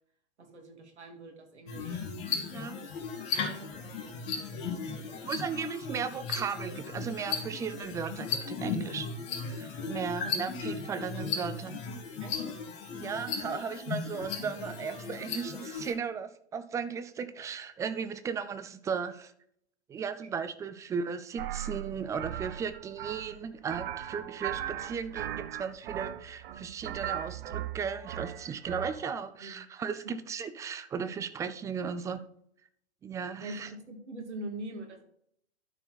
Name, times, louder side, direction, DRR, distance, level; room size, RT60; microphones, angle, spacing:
voice 1, 0.4-2.0 3.3-5.5 10.2-10.3 12.2-12.4 29.4-29.7 30.0-30.1 33.4-35.0, right 1 dB, 80° right, 3 dB, 2.3 m, -44 dB
sound 1, 1.7-15.9, left 5 dB, 50° left, 2.4 m, -36 dB
voice 2, 2.5-2.9 5.2-9.1 9.4-11.9 12.9-19.3 19.9-32.2 33.0-33.7, right 6 dB, 10° right, 11 dB, 0.3 m, -36 dB
sound 2, 21.4-29.1, right 11 dB, 55° right, 0.7 m, -38 dB
12.5 x 4.5 x 4.1 m, 0.68 s
hypercardioid pair, 105°, 34 cm